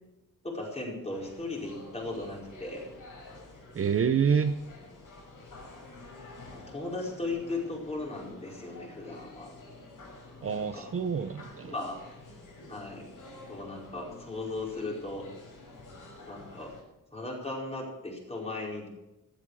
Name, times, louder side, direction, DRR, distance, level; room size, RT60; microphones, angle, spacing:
voice 1, 0.4-2.9 6.5-9.6 10.4-10.9 11.6-12.0 12.7-13.1 13.5-15.3 16.2-16.7 17.1-18.9, left 2 dB, 20° left, -2 dB, 5.0 m, -37 dB
sound 1, 1.1-16.8, left 2 dB, 65° left, 6.4 m, -49 dB
voice 2, 3.7-4.6 10.4-11.7, right 6 dB, 40° right, 8 dB, 0.8 m, -27 dB
15.5 x 14.0 x 4.9 m, 0.93 s
wide cardioid pair, 150°, 34 cm